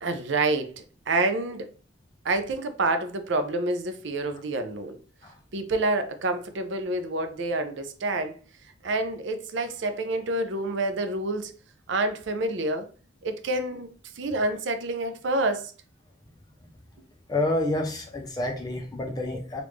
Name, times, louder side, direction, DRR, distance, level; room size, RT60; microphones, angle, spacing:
voice 1, 0.0-1.7 2.2-5.0 5.5-8.4 8.8-11.5 11.9-12.9 13.2-13.9 14.2-15.7, right 2 dB, 65° right, 0.5 m, -28 dB
voice 2, 17.3-19.6, left 2 dB, 20° left, 0.5 m, -28 dB
3.4 x 2.5 x 3.1 m
head